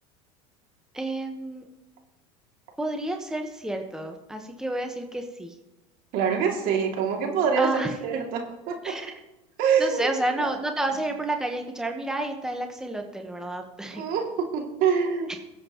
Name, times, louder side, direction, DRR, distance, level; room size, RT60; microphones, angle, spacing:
voice 1, 0.9-1.7 2.8-5.5 7.6-7.9 8.8-9.2 9.8-14.0, right 1 dB, 5° right, 4 dB, 1.2 m, -30 dB
voice 2, 6.1-9.0 9.6-10.1 10.4-10.5 13.9-15.3, right 6 dB, 60° right, 1 dB, 2.6 m, -25 dB
21.0 x 7.8 x 3.1 m, 1.0 s
supercardioid pair, 105°, 17 cm